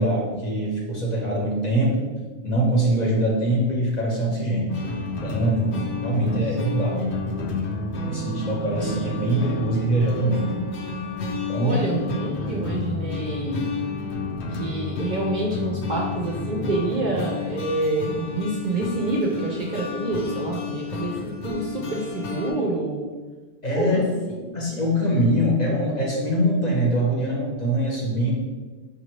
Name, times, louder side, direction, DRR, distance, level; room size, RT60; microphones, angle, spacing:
voice 1, 0.0-2.1 2.4-4.8 5.2-7.6 8.1-10.5 11.5-11.8 23.6-24.0 24.5-28.3, right 1 dB, 40° left, -3 dB, 0.8 m, -23 dB
sound 1, 4.1-22.1, right 1 dB, 90° right, 0.9 m, -44 dB
sound 2, 4.7-22.5, left 4 dB, 75° left, 0.9 m, -31 dB
voice 2, 11.6-13.7 14.5-23.0 23.7-24.0 24.3-24.4, right 2 dB, 55° right, -3 dB, 0.6 m, -27 dB
4.9 x 2.6 x 3.0 m, 1.3 s
omnidirectional pair, 1.2 m